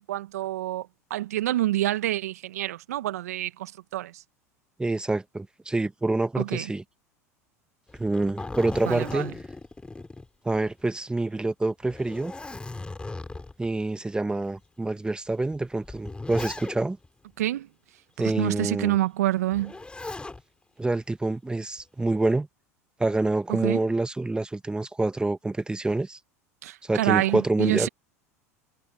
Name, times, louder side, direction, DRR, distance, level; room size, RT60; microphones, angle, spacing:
voice 1, 0.1-4.2 6.4-6.7 8.8-9.3 17.4-17.7 18.2-19.7 23.5-23.8 26.6-27.9, right 15 dB, 75° right, 1.7 m, -27 dB
voice 2, 4.8-6.8 8.0-9.3 10.4-12.3 13.6-17.0 18.2-19.0 20.8-22.5 23.0-26.2 26.8-27.9, right 2 dB, 10° right, 1.7 m, -27 dB
Zipper (clothing), 7.9-10.8 11.2-11.3 11.8-13.7 14.4-14.5 15.5-17.1 19.5-20.4 21.8-22.3, left 3 dB, 10° left, 3.2 m, -38 dB
hypercardioid pair, 80°, 8 cm